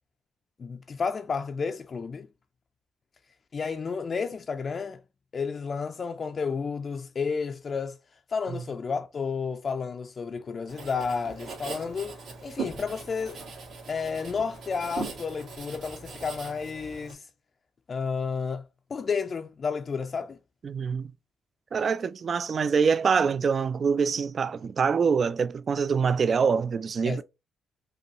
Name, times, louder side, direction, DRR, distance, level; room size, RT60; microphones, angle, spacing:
voice 1, 0.6-2.3 3.5-5.0 5.3-8.0 8.3-13.4 13.9-17.2 17.9-18.6 18.9-20.4 27.1-27.2, left 5 dB, 40° left, 0.4 m, -31 dB
Writing, 10.7-17.1, right 4 dB, 70° right, 1.7 m, -40 dB
voice 2, 20.6-21.1 21.7-27.2, right 6 dB, 45° right, 0.3 m, -25 dB
5.3 x 2.3 x 2.9 m
cardioid pair, 90°, 0 cm